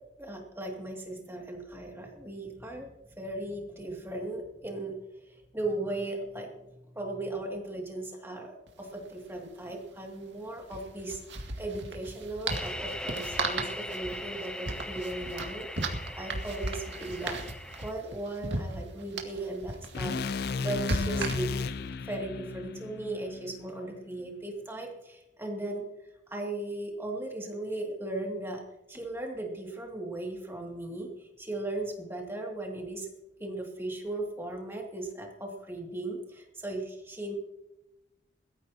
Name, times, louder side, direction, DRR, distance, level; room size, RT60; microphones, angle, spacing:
voice 1, 0.2-4.9 5.3-6.5 6.9-17.4 17.8-20.2 20.6-21.5 22.0-25.8 26.3-28.6 28.9-31.1 31.4-33.1 33.4-37.4, right 2 dB, 15° right, 0 dB, 2.4 m, -37 dB
sound 1, 8.7-8.8 9.0-9.1 10.6-21.8, right 2 dB, 80° right, 2.1 m, -36 dB
sound 2, 12.5-17.9, left 1 dB, 5° left, 0.6 m, -40 dB
sound 3, 19.9-24.1, left 4 dB, 55° left, 0.4 m, -35 dB
21.5 x 14.0 x 2.9 m, 0.94 s
head